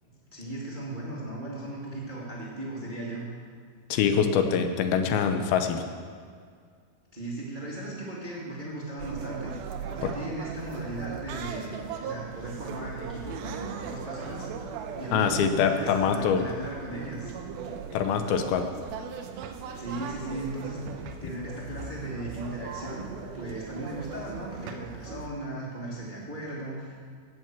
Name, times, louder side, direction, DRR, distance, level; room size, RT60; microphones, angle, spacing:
voice 1, 0.0-3.2 7.1-9.5 9.9-14.6 15.0-17.3 19.8-23.1 23.3-27.0, right 1 dB, 20° right, -5 dB, 1.5 m, -37 dB
voice 2, 3.9-5.8 10.0-10.1 15.1-16.5 17.9-18.6, left 7 dB, 80° left, 7 dB, 2.7 m, -24 dB
sound 1, 9.0-25.3, right 6 dB, 85° right, 2.7 m, -39 dB
17.0 x 6.4 x 7.3 m, 2.1 s
omnidirectional pair, 4.3 m